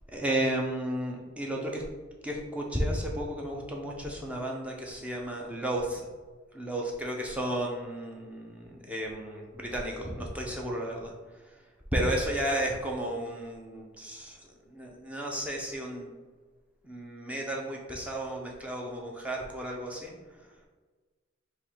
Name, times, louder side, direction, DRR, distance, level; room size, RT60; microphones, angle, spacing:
voice 1, 0.1-1.8 2.2-6.0 6.5-11.1 11.9-14.4 14.7-16.1 16.8-20.1, right 1 dB, 5° right, -1 dB, 0.6 m, -33 dB
3.7 x 2.7 x 4.5 m, 1.3 s
head